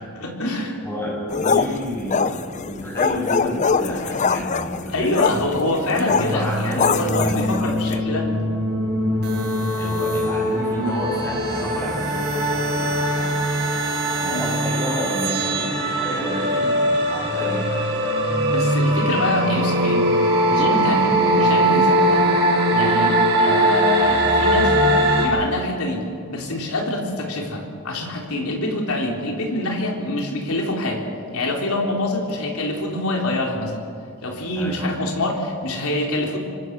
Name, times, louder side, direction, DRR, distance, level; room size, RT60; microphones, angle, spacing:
voice 1, 0.1-0.8 4.9-8.3 14.3-14.5 18.2-20.1 20.5-22.3 22.7-24.7 25.2-26.0 26.3-31.0 31.3-33.8 34.2-36.4, left 1 dB, 80° left, 0 dB, 4.2 m, -25 dB
voice 2, 0.8-5.4 5.9-7.8 9.7-12.9 13.1-13.3 14.2-17.9 21.0-21.2 34.5-34.8, equal, 10° left, -3 dB, 7.9 m, -30 dB
sound 1, 1.3-8.0, left 5 dB, 35° left, 0.6 m, -23 dB
sound 2, 6.1-25.3, right 1 dB, 50° right, 7.3 m, -21 dB
27.0 x 24.0 x 6.4 m, 2.4 s
head